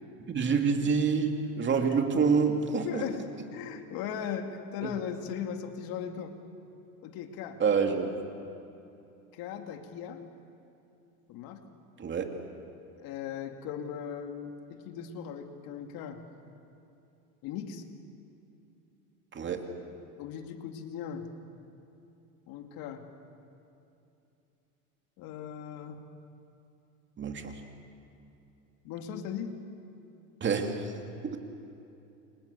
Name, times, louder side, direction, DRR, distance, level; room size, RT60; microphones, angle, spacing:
voice 1, 0.3-3.0 4.8-4.9 7.6-8.5 12.0-12.3 19.3-19.7 27.2-27.6 30.4-30.9 31.2-31.4, right 5 dB, 25° right, 4 dB, 2.5 m, -27 dB
voice 2, 2.8-3.2 3.5-6.4 7.0-7.6 9.3-10.2 11.3-11.6 13.0-16.2 17.4-17.8 20.2-21.3 22.5-23.1 25.2-26.0 28.8-29.5, left 8 dB, 50° left, 5 dB, 2.5 m, -38 dB
29.5 x 25.5 x 6.9 m, 2.8 s
supercardioid pair, 115°, 44 cm